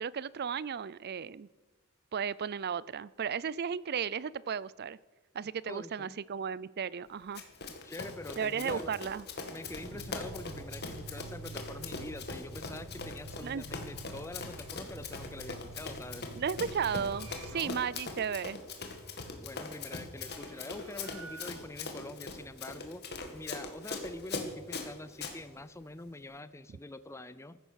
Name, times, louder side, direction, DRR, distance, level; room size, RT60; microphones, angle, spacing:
voice 1, 0.0-1.5 2.1-5.0 5.3-7.4 8.4-9.3 13.4-13.6 16.3-18.6, right 7 dB, 45° right, 20 dB, 0.4 m, -34 dB
voice 2, 5.7-6.2 7.8-9.1 9.5-16.3 17.5-17.8 19.4-23.0 23.3-27.6, left 2 dB, 15° left, 13 dB, 0.5 m, -45 dB
Run, 7.3-25.4, left 3 dB, 50° left, 2.1 m, -41 dB
sound 1, 9.6-17.6, right 2 dB, 65° right, 1.9 m, -48 dB
sound 2, 16.4-18.0 19.9-21.9, right 4 dB, 80° right, 1.6 m, -52 dB
15.0 x 12.0 x 6.4 m, 1.3 s
head